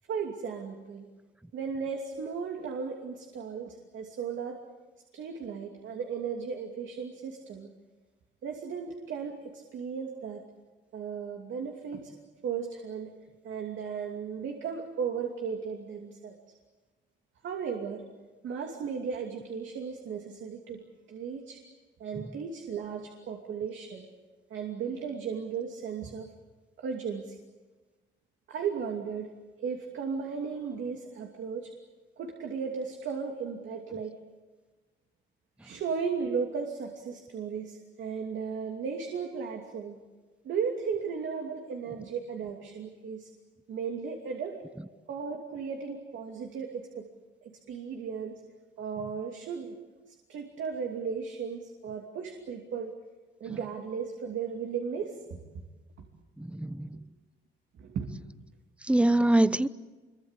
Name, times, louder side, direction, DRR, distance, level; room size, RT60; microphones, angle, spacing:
voice 1, 0.1-1.1 1.5-4.6 5.1-7.7 8.4-10.4 10.9-12.1 12.4-13.1 13.4-16.4 17.4-18.1 18.4-20.8 21.1-21.6 22.0-24.1 24.5-26.3 26.8-27.4 28.5-29.3 29.6-31.7 32.2-34.2 35.6-40.0 40.4-43.3 43.7-44.6 45.1-47.1 47.4-48.4 48.8-49.8 50.1-52.9 53.4-55.6 56.0-56.1 57.7-58.1, right 6 dB, 70° right, 2.8 m, -35 dB
voice 2, 56.4-57.0 58.8-59.7, right 1 dB, 5° right, 0.9 m, -24 dB
26.0 x 23.0 x 8.3 m
cardioid pair, 90°, 20 cm